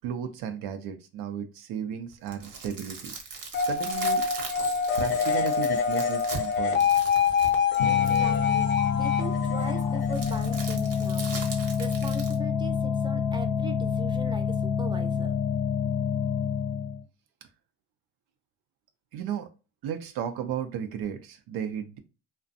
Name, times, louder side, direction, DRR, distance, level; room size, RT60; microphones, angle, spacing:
voice 1, 0.0-3.1 3.6-4.2 5.0-6.9 17.4-17.5 19.1-19.5 19.8-22.0, right 8 dB, 80° right, 0.5 m, -34 dB
sound 1, 2.1-8.4 10.1-12.4, right 4 dB, 60° right, 0.9 m, -39 dB
sound 2, 3.5-11.0, left 6 dB, 30° left, 0.6 m, -26 dB
sound 3, 7.8-17.0, left 6 dB, 85° left, 0.6 m, -28 dB
voice 2, 7.8-11.3 11.8-15.4, right 2 dB, 10° right, 0.5 m, -40 dB
2.4 x 2.2 x 2.5 m
cardioid pair, 85°, 37 cm